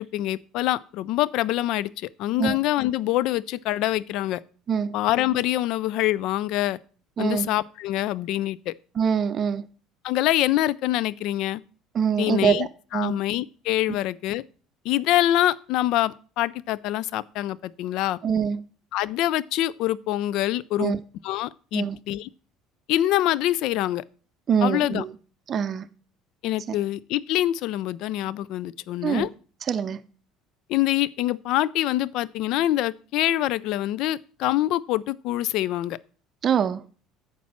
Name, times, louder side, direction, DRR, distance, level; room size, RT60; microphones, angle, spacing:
voice 1, 0.0-4.4 4.9-6.8 7.2-8.7 10.0-11.6 12.2-12.7 12.9-14.4 14.8-18.2 18.9-20.9 21.2-22.3 22.9-24.0 24.6-25.0 26.4-29.3 30.7-36.0, left 14 dB, 60° left, 0.3 m, -25 dB
voice 2, 7.2-7.5 9.0-9.6 11.9-13.2 18.2-18.6 20.8-21.0 21.7-22.0 24.5-25.1 25.5-25.9 26.7-26.8 29.0-29.3 29.7-30.0 36.4-36.8, right 7 dB, 40° right, 0.5 m, -24 dB
9.2 x 6.0 x 4.3 m
figure-of-eight pair, 60°, 0 cm